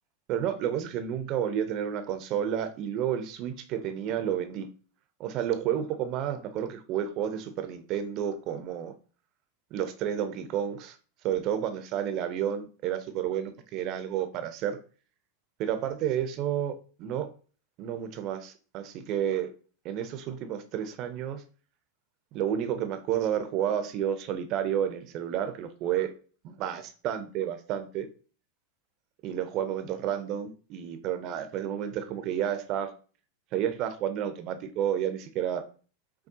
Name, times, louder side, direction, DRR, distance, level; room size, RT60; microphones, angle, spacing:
voice 1, 0.3-4.7 5.2-8.9 9.7-11.0 11.2-14.8 15.6-17.3 17.8-19.5 19.8-21.4 22.3-26.1 26.4-28.1 29.2-32.9 33.5-35.6, right 9 dB, 45° right, 9 dB, 0.7 m, -31 dB
6.0 x 2.3 x 2.8 m, 0.39 s
hypercardioid pair, 95°, 0 cm